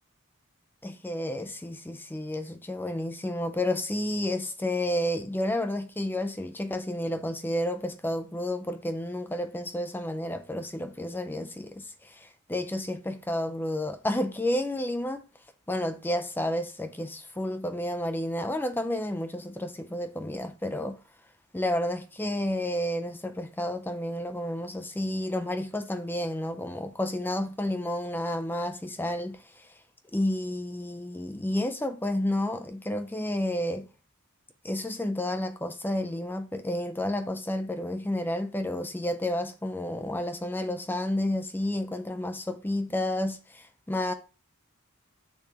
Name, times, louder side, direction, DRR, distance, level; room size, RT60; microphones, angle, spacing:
voice 1, 0.8-15.2 15.7-21.0 21.5-29.6 30.1-33.9 34.6-44.1, left 1 dB, 10° left, 0.4 m, -31 dB
6.8 x 6.6 x 3.0 m
head